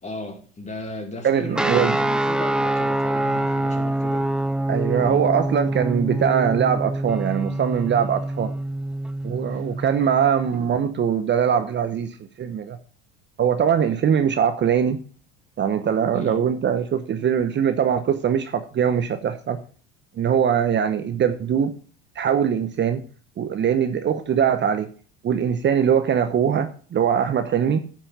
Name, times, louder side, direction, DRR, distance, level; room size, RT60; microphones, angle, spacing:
voice 1, 0.0-4.3 4.9-5.3 9.3-9.6 13.9-14.0 16.1-16.4, left 2 dB, 20° left, 2.5 m, -36 dB
voice 2, 1.2-2.0 4.7-8.5 9.2-12.8 13.4-15.0 15.6-19.6 20.2-21.7 22.2-23.0 23.4-24.9 25.2-27.8, right 8 dB, 35° right, 0.9 m, -22 dB
sound 1, 1.5-10.5, right 1 dB, 5° right, 0.3 m, -25 dB
9.7 x 5.9 x 5.6 m
hypercardioid pair, 80°, 32 cm